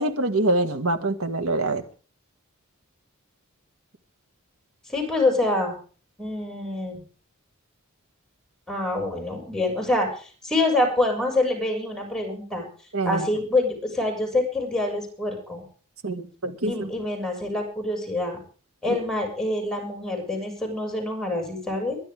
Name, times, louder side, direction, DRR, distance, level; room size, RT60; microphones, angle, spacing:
voice 1, 0.0-1.8 12.9-13.2 16.0-16.9 18.9-19.0, right 2 dB, 80° right, 7 dB, 2.1 m, -25 dB
voice 2, 4.9-5.8 6.2-7.0 8.7-12.7 13.0-15.6 16.7-18.4 18.8-22.0, left 2 dB, 5° left, 2 dB, 6.7 m, -26 dB
22.5 x 11.5 x 3.7 m, 0.40 s
head